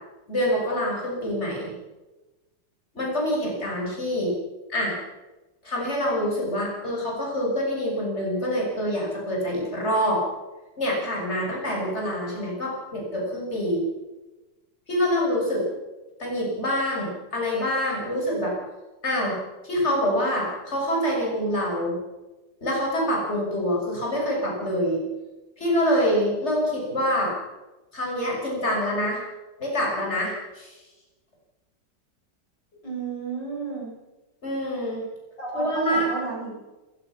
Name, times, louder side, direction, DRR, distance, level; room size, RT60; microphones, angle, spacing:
voice 1, 0.3-1.7 2.9-4.3 4.7-5.0 5.6-10.2 10.8-13.8 14.9-15.6 16.2-18.5 19.0-19.4 19.6-22.0 22.6-25.0 25.6-27.3 27.9-29.2 29.6-30.7 34.4-35.0 35.5-36.1, equal, 35° left, -2 dB, 6.6 m, -26 dB
voice 2, 32.8-33.9 35.4-36.6, right 4 dB, 75° left, -1 dB, 6.8 m, -32 dB
28.5 x 15.5 x 6.1 m, 1.1 s
omnidirectional pair, 2.0 m